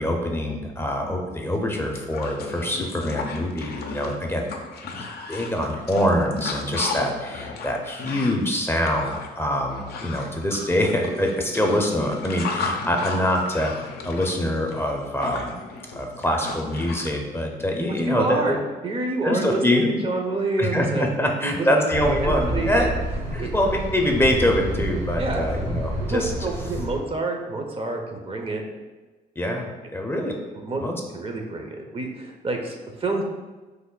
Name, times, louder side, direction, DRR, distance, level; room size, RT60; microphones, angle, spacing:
voice 1, 0.0-4.5 4.8-15.6 15.9-18.6 19.2-20.0 20.6-22.9 23.3-26.3 29.4-30.3 30.8-30.9, left 1 dB, 15° left, 1 dB, 0.5 m, -24 dB
sound 1, 1.4-1.5 1.8-17.1, left 4 dB, 70° left, 0.5 m, -35 dB
voice 2, 18.0-21.9 22.2-22.9 23.3-23.5 25.2-25.5 26.0-28.6 30.6-30.8 31.1-33.2, right 2 dB, 35° right, 2 dB, 0.6 m, -28 dB
sound 2, 21.9-27.0, right 1 dB, 75° right, 1.2 m, -29 dB
3.2 x 2.1 x 3.7 m, 1.2 s
supercardioid pair, 65°, 17 cm